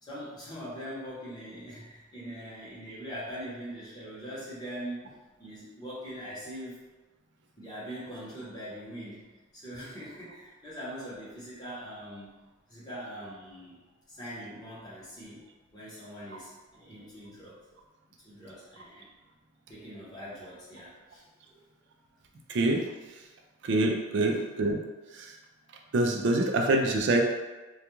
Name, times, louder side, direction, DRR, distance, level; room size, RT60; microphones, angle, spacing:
voice 1, 0.0-6.8 7.6-9.2 9.5-12.3 12.7-13.8 14.1-15.4 15.7-17.6 18.2-19.1 19.7-21.6, equal, 20° left, -9 dB, 0.8 m, -42 dB
voice 2, 22.5-22.8 23.6-24.8 25.1-25.3 25.9-27.2, right 2 dB, 55° right, 2 dB, 0.3 m, -25 dB
2.3 x 2.3 x 2.9 m, 1.2 s
head